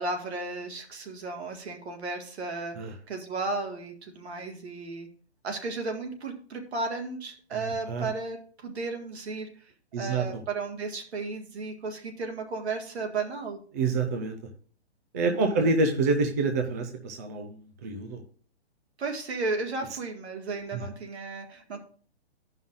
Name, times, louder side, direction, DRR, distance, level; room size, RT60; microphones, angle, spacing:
voice 1, 0.0-5.1 5.4-9.5 10.0-13.6 15.4-15.6 19.0-21.8, right 3 dB, 75° right, 3 dB, 1.9 m, -34 dB
voice 2, 7.6-8.1 9.9-10.3 13.7-14.4 15.1-18.2 20.7-20.9, right 3 dB, 15° right, 3 dB, 0.4 m, -27 dB
15.5 x 5.5 x 2.5 m, 0.43 s
hypercardioid pair, 155°, 33 cm